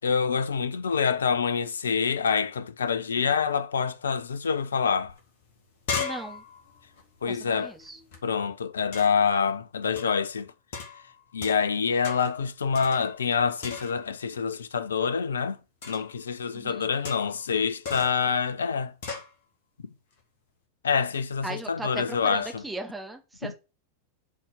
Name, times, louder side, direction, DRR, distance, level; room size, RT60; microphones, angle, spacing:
voice 1, 0.0-5.1 7.2-7.7 8.2-10.5 11.3-15.6 15.8-18.9 19.8-19.9 20.8-22.6, left 6 dB, 70° left, 0.7 m, -26 dB
sound 1, 5.1-5.2 5.5-8.2 8.9-9.3 10.0-10.2 10.7-11.8 12.0-12.4 12.7-13.3 13.6-14.2 15.8-16.2 17.0-17.5 17.8-18.3 19.0-19.3, left 5 dB, 55° left, 2.6 m, -37 dB
voice 2, 6.0-6.4 7.3-8.0 16.5-16.9 21.4-23.6, right 2 dB, 10° right, 1.7 m, -38 dB
7.4 x 4.4 x 6.4 m
figure-of-eight pair, 90°, 0 cm